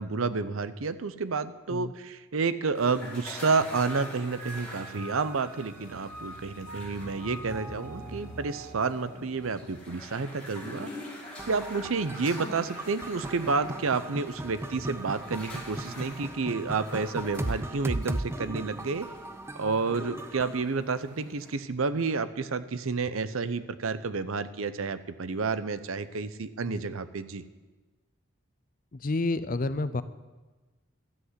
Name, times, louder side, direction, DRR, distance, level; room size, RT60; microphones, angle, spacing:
voice 1, 0.0-10.9 11.5-19.1 19.6-27.4, right 4 dB, 80° right, 13 dB, 0.7 m, -30 dB
sound 1, 2.7-21.6, left 1 dB, 5° left, 5.0 m, -45 dB
sound 2, 3.5-10.8, right 1 dB, 40° right, 5.4 m, -44 dB
sound 3, 11.4-20.6, right 1 dB, 10° right, 0.4 m, -37 dB
voice 2, 28.9-30.0, left 2 dB, 40° left, 13 dB, 0.5 m, -30 dB
13.0 x 8.1 x 8.0 m, 1.2 s
head